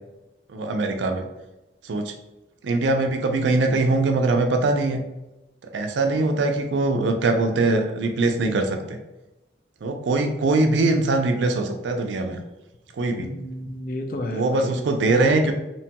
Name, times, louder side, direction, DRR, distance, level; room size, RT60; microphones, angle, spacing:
voice 1, 0.5-1.2 1.9-2.1 2.6-5.0 5.7-9.0 9.8-12.4 13.0-13.3 14.3-15.5, right 2 dB, 85° right, 5 dB, 0.4 m, -22 dB
voice 2, 13.2-15.3, left 1 dB, 50° left, 4 dB, 0.3 m, -32 dB
2.9 x 2.2 x 2.8 m, 1.0 s
head